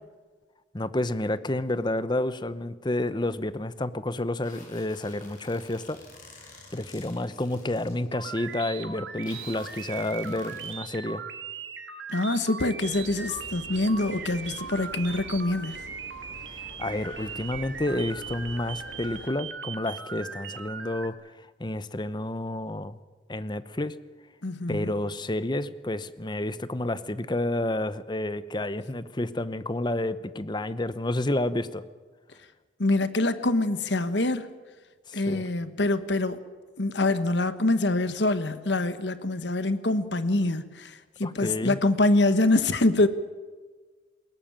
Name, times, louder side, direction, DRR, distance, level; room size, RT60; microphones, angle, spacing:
voice 1, 0.7-6.0 6.7-11.2 16.8-21.1 21.6-23.0 23.3-23.9 24.7-31.8 35.1-35.4 41.2-41.8, left 1 dB, 25° left, 14 dB, 0.8 m, -30 dB
sound 1, 4.4-7.9 8.4-8.5 9.2-10.7, left 3 dB, 45° left, 7.1 m, -50 dB
sound 2, 8.1-21.1, right 7 dB, 70° right, 1.9 m, -39 dB
voice 2, 12.1-15.9 24.4-24.9 32.8-34.5 35.1-36.4 36.8-43.1, left 2 dB, 65° left, 12 dB, 1.3 m, -25 dB
sound 3, 12.9-19.3, left 1 dB, 85° left, 2.7 m, -46 dB
21.0 x 18.0 x 8.9 m, 1.4 s
head